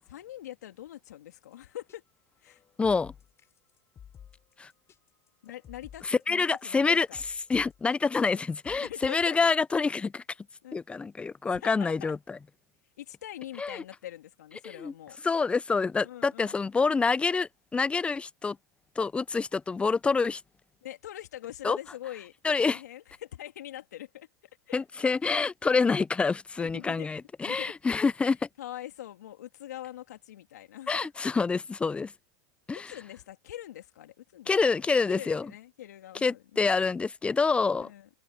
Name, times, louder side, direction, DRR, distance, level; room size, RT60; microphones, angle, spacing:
voice 1, 0.1-2.0 2.4-2.6 5.4-7.2 8.8-9.5 10.6-10.8 11.5-12.1 13.0-15.2 16.0-16.6 20.8-22.3 22.6-24.3 24.7-25.1 26.6-27.1 27.4-27.7 28.6-31.1 32.7-34.5 35.1-36.7 37.8-38.1, left 13 dB, 80° left, 2.8 m, -43 dB
sound 1, 1.5-1.6 1.9-2.0 2.5-8.8, left 9 dB, 30° left, 5.2 m, -52 dB
voice 2, 2.8-3.1 4.6-4.7 6.1-7.1 7.5-10.2 10.7-12.4 13.6-13.8 14.8-14.9 15.2-18.6 19.0-20.4 21.6-21.8 22.4-22.8 24.7-28.4 30.9-32.1 32.7-32.9 34.5-35.5 36.2-37.9, left 4 dB, 10° left, 0.4 m, -27 dB
hypercardioid pair, 105°, 9 cm